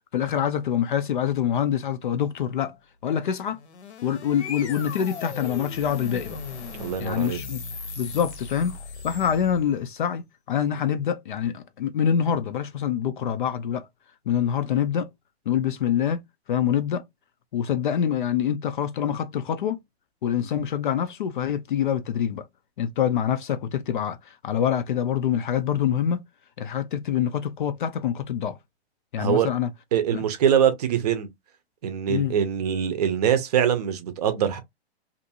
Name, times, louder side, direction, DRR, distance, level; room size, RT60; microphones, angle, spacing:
voice 1, 0.1-2.8 3.0-3.6 4.0-6.4 7.0-7.6 8.0-8.8 9.0-13.9 14.3-15.1 15.5-16.2 16.5-17.0 17.5-19.8 20.2-22.5 22.8-26.2 26.6-28.6 29.1-29.7 30.1-30.2 32.1-32.3, left 9 dB, 50° left, 0.4 m, -25 dB
sound 1, 3.4-9.8, left 5 dB, 75° left, 1.0 m, -38 dB
voice 2, 6.8-7.4 29.2-29.5 29.9-31.3 31.8-34.6, right 9 dB, 35° right, 0.6 m, -23 dB
2.6 x 2.4 x 2.7 m
hypercardioid pair, 155°, 33 cm